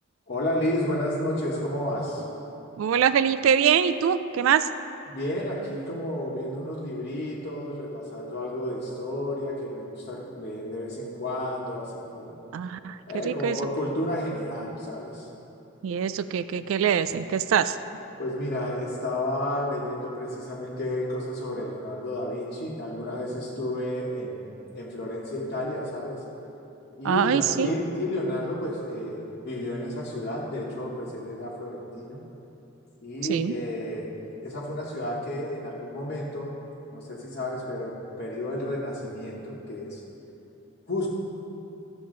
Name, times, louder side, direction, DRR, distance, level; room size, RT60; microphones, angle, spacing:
voice 1, 0.3-2.3 5.1-12.3 13.1-15.3 18.2-26.2 27.0-32.2 33.0-34.1 34.4-36.5 36.9-40.0 40.9-41.1, left 1 dB, 50° left, -8 dB, 1.2 m, -31 dB
voice 2, 2.8-4.7 12.5-13.0 13.2-13.6 15.8-17.8 27.0-27.7 33.3-33.5, right 8 dB, 75° right, 13 dB, 0.3 m, -23 dB
13.5 x 7.0 x 3.8 m, 3.0 s
head